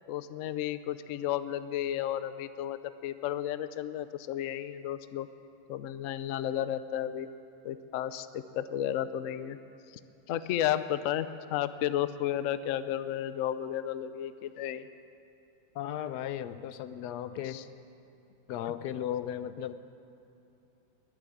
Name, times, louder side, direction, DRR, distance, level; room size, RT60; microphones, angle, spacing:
voice 1, 0.1-5.3 5.7-7.3 7.6-9.6 10.3-14.9 17.5-17.6, left 11 dB, 90° left, 13 dB, 0.7 m, -33 dB
voice 2, 15.7-17.6 18.5-19.7, left 10 dB, 70° left, 12 dB, 1.1 m, -36 dB
21.0 x 7.2 x 9.5 m, 2.8 s
omnidirectional pair, 2.0 m